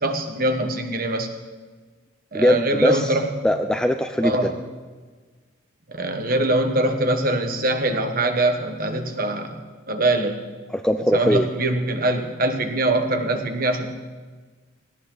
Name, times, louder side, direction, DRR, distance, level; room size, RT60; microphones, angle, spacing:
voice 1, 0.0-1.3 2.3-3.3 4.2-4.5 5.9-9.6 9.9-10.4 11.1-13.9, right 2 dB, 45° right, 5 dB, 1.5 m, -23 dB
voice 2, 2.3-3.2 3.4-4.5 10.7-11.5, left 1 dB, 5° left, 7 dB, 0.5 m, -21 dB
18.0 x 17.5 x 4.0 m, 1.4 s
head